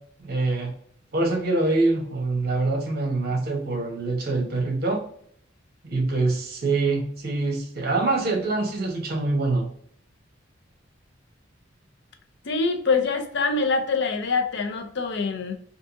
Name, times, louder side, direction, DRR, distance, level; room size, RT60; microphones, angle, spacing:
voice 1, 0.2-0.7 1.1-5.0 5.8-9.7, right 3 dB, 50° right, 1 dB, 1.0 m, -25 dB
voice 2, 12.4-15.5, left 4 dB, 60° left, 6 dB, 0.5 m, -24 dB
3.6 x 2.6 x 2.5 m, 0.63 s
head